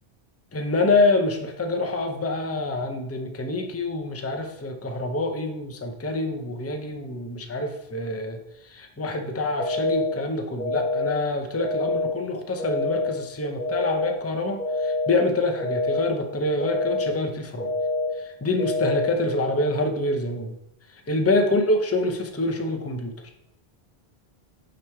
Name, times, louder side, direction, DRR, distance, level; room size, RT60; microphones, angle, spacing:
voice 1, 0.5-8.4 8.6-17.7 18.2-20.5 21.1-23.1, left 2 dB, 15° left, 5 dB, 0.5 m, -26 dB
sound 1, 9.6-10.1 10.6-11.1 11.6-12.1 12.6-13.1 13.6-14.1 14.6-15.1 15.6-16.1 16.6-17.1 17.6-18.1 18.6-19.1, left 2 dB, 45° left, 2.8 m, -26 dB
9.0 x 3.2 x 4.3 m, 0.86 s
omnidirectional pair, 1.1 m